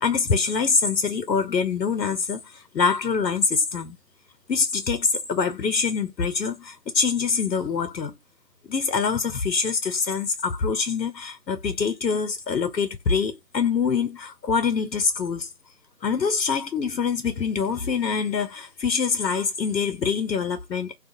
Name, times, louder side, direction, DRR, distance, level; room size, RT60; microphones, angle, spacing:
voice 1, 0.0-4.0 4.5-8.1 8.7-15.5 16.0-21.0, left 5 dB, 90° left, 0.7 m, -25 dB
2.7 x 2.3 x 2.5 m
figure-of-eight pair, 175°, 50 cm